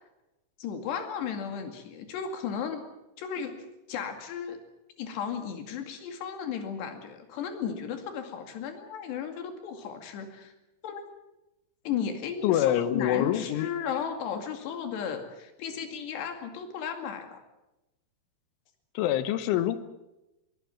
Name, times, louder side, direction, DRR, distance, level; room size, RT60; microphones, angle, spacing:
voice 1, 0.6-2.9 3.2-3.6 3.9-4.6 5.0-10.5 10.8-11.0 11.8-17.4, left 7 dB, 65° left, 6 dB, 4.3 m, -35 dB
voice 2, 12.4-13.7 18.9-19.8, left 11 dB, 85° left, 12 dB, 3.5 m, -25 dB
22.5 x 19.0 x 7.3 m, 0.96 s
omnidirectional pair, 5.5 m